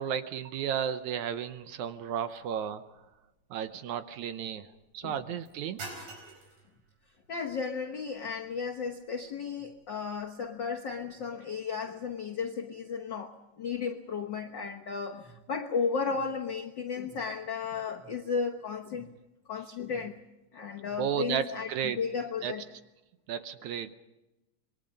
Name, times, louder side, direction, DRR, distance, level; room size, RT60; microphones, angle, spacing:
voice 1, 0.0-2.8 3.5-5.8 21.0-22.0 22.4-22.5 23.3-24.0, right 8 dB, 70° right, 10 dB, 2.0 m, -33 dB
sound 1, 1.0-11.1, right 3 dB, 90° right, 6.3 m, -52 dB
voice 2, 7.3-19.1 19.5-20.1 20.5-22.6, left 5 dB, 85° left, 2 dB, 1.0 m, -34 dB
26.5 x 22.0 x 5.3 m, 0.99 s
omnidirectional pair, 3.9 m